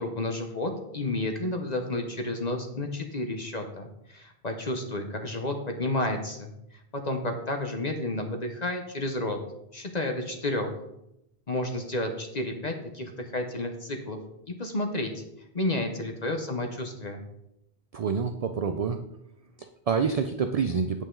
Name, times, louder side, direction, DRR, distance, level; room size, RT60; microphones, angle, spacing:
voice 1, 0.0-6.5 6.9-9.4 9.7-10.7 11.5-14.2 14.5-15.2 15.5-17.2, left 2 dB, 45° left, 4 dB, 1.0 m, -31 dB
voice 2, 17.9-19.0 19.6-21.0, right 6 dB, 50° right, 7 dB, 0.5 m, -27 dB
8.8 x 8.2 x 3.8 m, 0.83 s
omnidirectional pair, 1.1 m